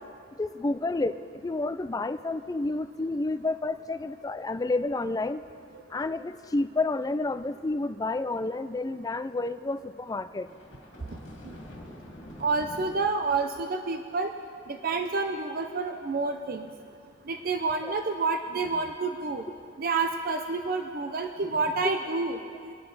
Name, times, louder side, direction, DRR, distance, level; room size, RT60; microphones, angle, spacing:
voice 1, 0.4-5.4 5.9-10.5, left 2 dB, 15° left, 11 dB, 0.3 m, -30 dB
sound 1, 10.4-13.1, equal, 60° left, 2.4 m, -45 dB
voice 2, 12.4-14.3 14.7-16.7 17.3-19.4 19.8-22.7, right 3 dB, 45° right, 6 dB, 0.6 m, -29 dB
22.5 x 11.0 x 4.0 m, 2.3 s
head